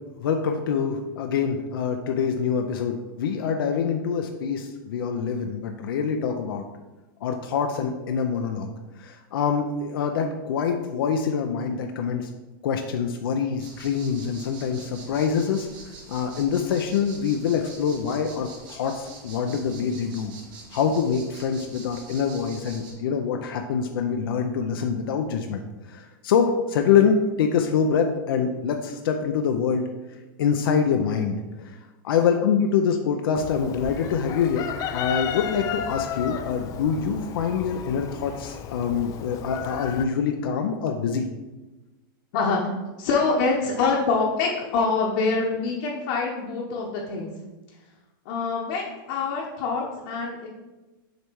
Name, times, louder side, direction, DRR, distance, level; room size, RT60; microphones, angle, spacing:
voice 1, 0.2-6.6 7.2-8.7 9.0-12.3 12.6-15.7 16.1-20.3 20.7-29.9 30.4-31.7 32.0-41.3, left 6 dB, 80° left, 4 dB, 0.6 m, -25 dB
sound 1, 13.6-22.9, right 3 dB, 40° right, 1.9 m, -45 dB
Chicken rooster, 33.4-40.1, left 9 dB, 30° left, 0.4 m, -34 dB
voice 2, 42.3-42.7 43.0-47.3 48.2-50.5, left 4 dB, 55° left, -3 dB, 1.0 m, -25 dB
6.6 x 3.2 x 4.6 m, 1.1 s
supercardioid pair, 140°, 12 cm